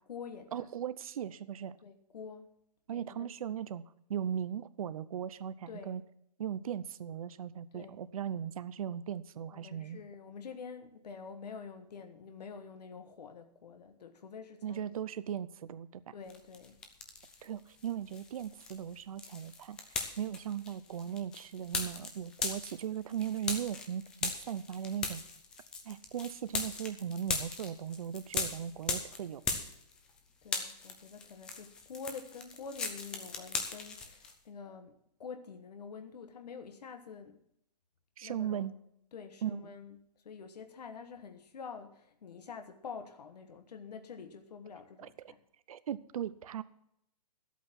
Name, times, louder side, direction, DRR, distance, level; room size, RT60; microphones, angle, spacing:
voice 1, 0.0-0.7 1.8-2.5 2.9-3.4 5.7-6.0 7.7-8.0 9.5-15.1 16.1-16.8 30.4-37.4 38.2-38.7 39.1-45.4, left 5 dB, 85° left, 1.3 m, -47 dB
voice 2, 0.5-1.8 2.9-3.8 4.1-6.0 6.4-10.0 14.6-16.0 17.4-19.8 20.2-25.2 25.8-29.4 38.2-38.7 39.4-39.7 45.0-45.1 45.7-46.6, right 9 dB, 60° right, 0.7 m, -38 dB
sound 1, 16.3-17.5 17.8-30.2 30.4-34.3, left 4 dB, 5° left, 0.3 m, -39 dB
12.0 x 8.4 x 6.0 m
hypercardioid pair, 170°, 20 cm